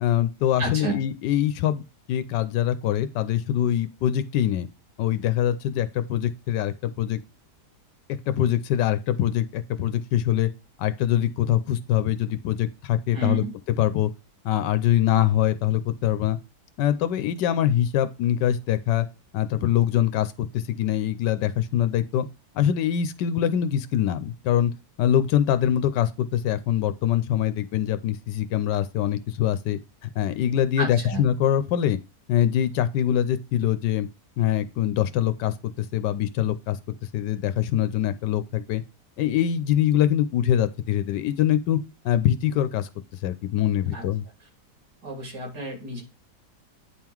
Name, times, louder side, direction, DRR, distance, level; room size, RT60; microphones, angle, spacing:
voice 1, 0.0-4.7 5.0-7.2 8.3-10.5 10.8-13.4 13.8-14.1 14.4-16.4 16.8-19.1 19.3-22.3 22.5-24.7 25.0-29.8 30.1-32.0 32.3-34.1 34.4-36.8 37.1-38.8 39.2-41.8 42.0-42.9 43.2-44.2, left 11 dB, 85° left, 1.3 m, -23 dB
voice 2, 0.6-1.0 13.1-13.5 30.8-31.2 43.9-44.0 45.0-46.0, right 2 dB, 80° right, 3.5 m, -30 dB
9.2 x 3.7 x 4.5 m
omnidirectional pair, 1.8 m